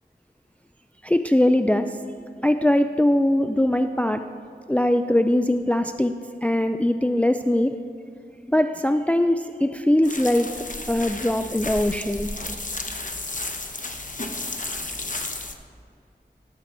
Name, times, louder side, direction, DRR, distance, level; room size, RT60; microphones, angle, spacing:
voice 1, 1.0-2.0 2.4-4.2 4.7-7.7 8.5-10.5 10.9-12.3, left 1 dB, 5° left, 8 dB, 0.4 m, -21 dB
sound 1, 10.0-15.5, left 2 dB, 45° left, 1.0 m, -33 dB
18.0 x 7.5 x 4.4 m, 2.4 s
wide cardioid pair, 45°, 18 cm